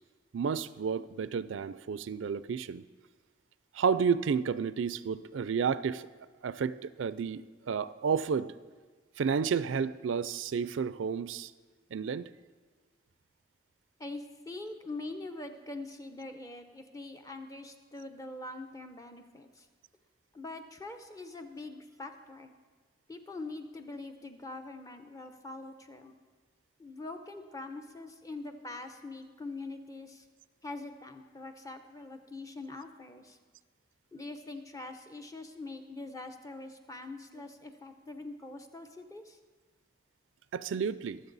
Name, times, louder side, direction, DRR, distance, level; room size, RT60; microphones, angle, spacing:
voice 1, 0.3-2.8 3.7-6.1 6.4-8.5 9.2-11.5 11.9-12.3 40.5-41.2, right 6 dB, 85° right, 16 dB, 0.4 m, -31 dB
voice 2, 14.0-19.7 20.3-22.5 23.1-26.1 26.8-30.3 30.6-33.4 34.1-39.4, left 2 dB, 20° left, 6 dB, 0.7 m, -43 dB
22.5 x 7.6 x 4.0 m, 1.4 s
head